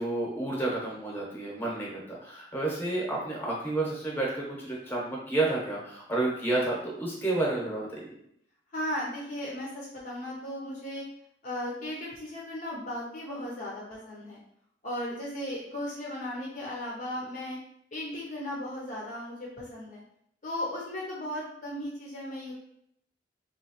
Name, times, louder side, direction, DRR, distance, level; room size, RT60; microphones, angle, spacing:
voice 1, 0.0-8.0, right 2 dB, 10° left, -4 dB, 1.0 m, -30 dB
voice 2, 8.7-11.0 11.4-14.4 14.8-17.6 17.9-20.0 20.4-22.5, left 1 dB, 45° left, -4 dB, 0.7 m, -36 dB
3.1 x 3.1 x 2.9 m, 0.71 s
head